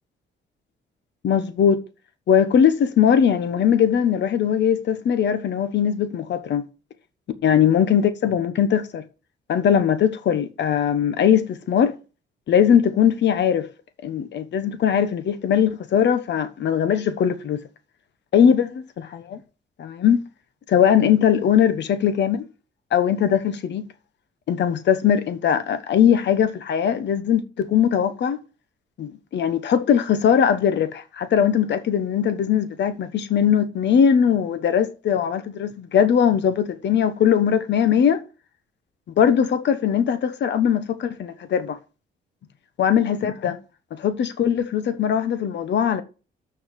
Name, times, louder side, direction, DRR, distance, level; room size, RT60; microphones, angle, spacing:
voice 1, 1.2-1.8 2.3-6.6 7.4-9.0 9.5-11.9 12.5-13.7 14.0-17.6 18.3-19.4 19.8-20.2 20.7-22.4 22.9-23.9 24.5-28.4 29.0-38.2 39.2-41.8 42.8-43.6 43.9-46.0, left 8 dB, 65° left, 1.2 m, -20 dB
7.2 x 6.0 x 6.9 m
cardioid pair, 90°, 20 cm